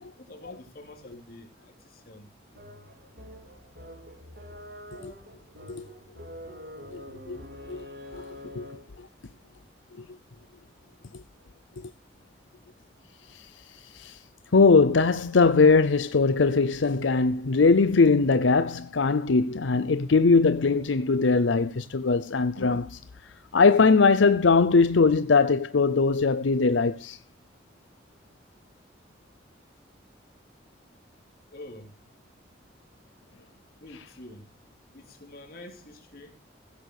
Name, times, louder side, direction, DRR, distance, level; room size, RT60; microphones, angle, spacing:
voice 1, 0.2-2.3 31.5-32.0 33.8-34.5 34.9-36.4, left 1 dB, 50° left, 3.7 m, -46 dB
sound 1, 2.5-9.0, left 1 dB, 65° right, 3.8 m, -45 dB
voice 2, 6.9-7.4 7.7-7.8 8.1-8.7 9.0-9.1 11.1-11.2 11.8-11.9 13.3-13.5 13.9-14.2 14.5-23.0 23.5-27.2, left 4 dB, 90° left, 0.7 m, -21 dB
16.0 x 7.0 x 6.6 m
head